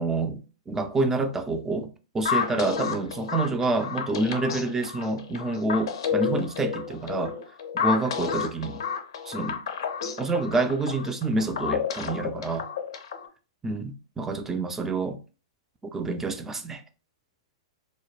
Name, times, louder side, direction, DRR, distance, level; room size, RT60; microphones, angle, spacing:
voice 1, 0.0-1.9 2.1-7.4 7.7-8.8 9.3-9.6 10.2-12.7 13.6-15.2 15.9-16.8, right 3 dB, 15° right, 0.3 m, -27 dB
sound 1, 2.3-13.3, left 6 dB, 65° left, 0.4 m, -31 dB
2.1 x 2.1 x 3.1 m
hypercardioid pair, 110°, 3 cm